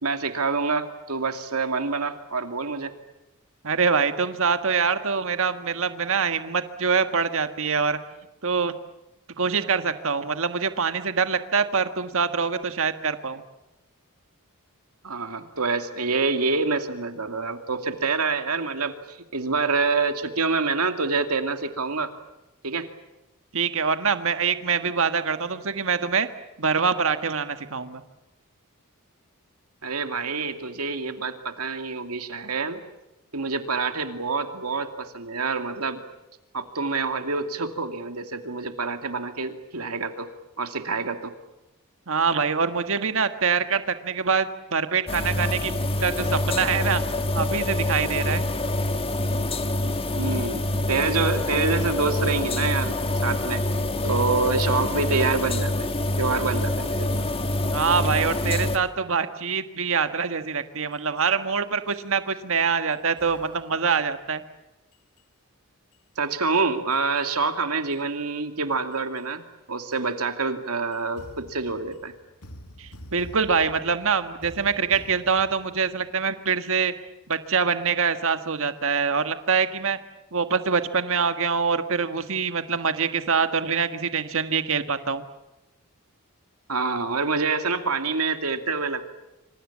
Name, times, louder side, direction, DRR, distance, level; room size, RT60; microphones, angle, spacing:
voice 1, 0.0-2.9 15.0-22.1 22.6-22.9 29.8-32.8 33.3-36.0 36.5-40.3 40.6-41.3 50.2-53.6 54.0-55.9 56.2-57.2 66.2-69.4 69.7-72.1 86.7-89.1, right 4 dB, 85° right, 7 dB, 2.5 m, -27 dB
voice 2, 3.6-8.0 8.4-8.7 9.4-13.4 23.5-26.3 26.6-28.0 42.1-47.0 47.3-48.4 57.7-64.4 72.8-76.9 77.3-80.0 80.3-85.2, right 5 dB, 65° right, 9 dB, 1.6 m, -24 dB
sound 1, 45.1-58.8, left 1 dB, 25° left, 1.6 m, -26 dB
sound 2, 60.9-61.2 61.9-62.0 62.9-64.2 64.9-65.2 65.9-66.0 66.9-67.2 67.9-68.0 68.9-69.2 69.9-70.0 70.9-76.7, equal, 90° left, 2.6 m, -48 dB
27.0 x 26.0 x 7.4 m, 0.99 s
head